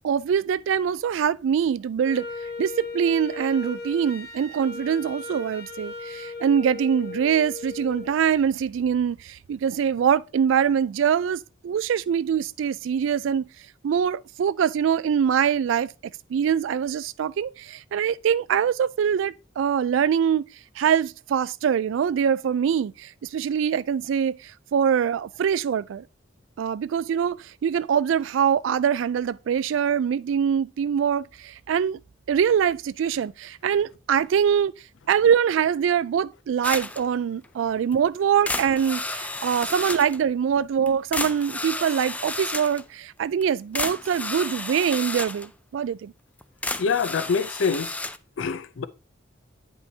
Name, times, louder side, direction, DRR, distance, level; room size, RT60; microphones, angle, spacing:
voice 1, 0.0-2.3 2.6-13.5 13.8-15.9 16.3-20.5 20.8-26.0 26.6-32.0 32.3-34.7 35.1-46.1, right 8 dB, 80° right, 0.3 m, -23 dB
Wind instrument woodwind instrument, 2.0-8.1, left 3 dB, 55° left, 1.0 m, -37 dB
sound 1, 36.6-37.0 37.4-37.5 37.9-38.0 38.5-40.2 40.9-41.0 41.1-42.8 43.4-43.5 43.7-45.5 46.4-48.2, left 2 dB, 10° left, 0.3 m, -32 dB
voice 2, 46.8-48.0 48.4-48.9, left 5 dB, 75° left, 0.5 m, -25 dB
9.6 x 5.4 x 2.8 m
head